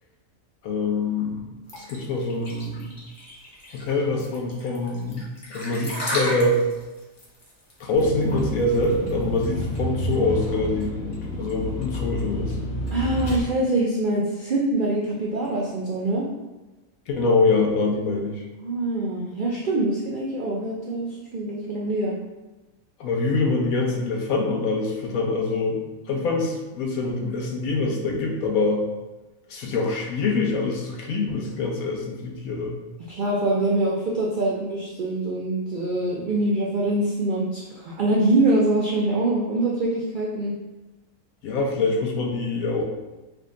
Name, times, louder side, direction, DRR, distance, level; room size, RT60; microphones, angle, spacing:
voice 1, 0.6-1.6 1.9-2.9 3.7-5.2 5.5-6.6 7.8-12.6 17.1-18.4 23.0-25.8 26.1-28.9 29.5-32.7 41.4-42.9, left 3 dB, 85° left, 1 dB, 1.1 m, -24 dB
sound 1, 1.7-9.4, equal, 20° left, 0.8 m, -34 dB
Vehicle, 7.9-13.4, equal, 60° left, 1.7 m, -30 dB
voice 2, 12.9-16.2 18.6-22.2 33.1-40.5, right 2 dB, 70° right, -4 dB, 0.4 m, -24 dB
3.6 x 2.2 x 3.6 m, 1.1 s
omnidirectional pair, 1.4 m